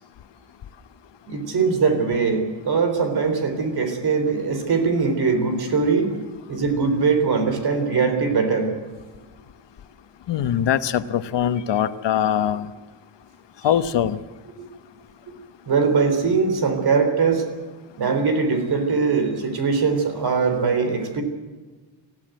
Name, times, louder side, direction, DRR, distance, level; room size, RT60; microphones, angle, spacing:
voice 1, 1.3-6.1 6.5-8.7 15.7-17.5 18.0-21.2, right 5 dB, 55° right, 7 dB, 3.7 m, -21 dB
voice 2, 10.3-12.7 13.6-14.2, left 10 dB, 70° left, 12 dB, 1.1 m, -22 dB
21.0 x 15.0 x 9.2 m, 1.3 s
wide cardioid pair, 160°, 44 cm